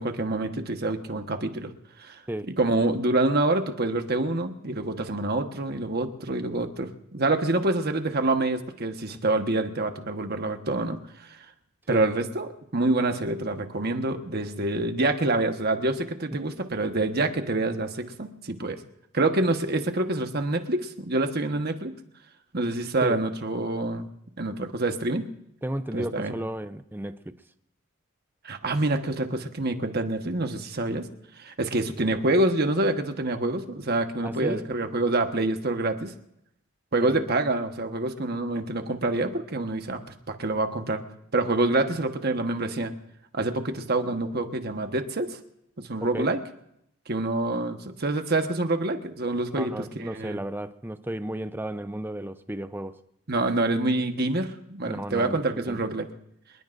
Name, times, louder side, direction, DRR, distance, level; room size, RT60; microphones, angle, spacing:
voice 1, 0.0-1.7 2.0-2.2 2.6-11.0 11.3-11.4 11.9-18.8 19.1-21.9 22.5-24.1 24.4-25.3 25.9-26.3 28.4-31.1 31.4-36.1 36.9-40.0 40.3-41.0 41.3-42.9 43.3-45.4 45.8-46.4 47.1-50.4 53.3-56.1, right 2 dB, 50° right, 1.3 m, -26 dB
voice 2, 25.6-27.4 34.2-34.7 36.9-37.3 46.0-46.3 49.6-53.0 54.9-55.8, right 1 dB, 10° right, 0.6 m, -34 dB
26.5 x 20.5 x 2.6 m
head